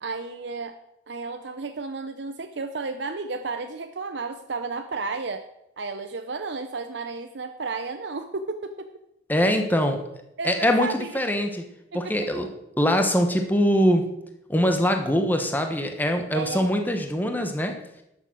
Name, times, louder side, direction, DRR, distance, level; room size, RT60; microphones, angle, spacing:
voice 1, 0.0-0.8 1.1-5.4 5.8-8.9 10.4-11.2 11.9-12.1 16.3-16.7, right 4 dB, 65° right, 7 dB, 0.7 m, -32 dB
voice 2, 9.3-10.0 10.4-11.6 11.9-12.5 12.8-14.0 14.5-17.8, equal, 10° left, 5 dB, 1.1 m, -23 dB
12.0 x 7.1 x 6.2 m, 0.85 s
head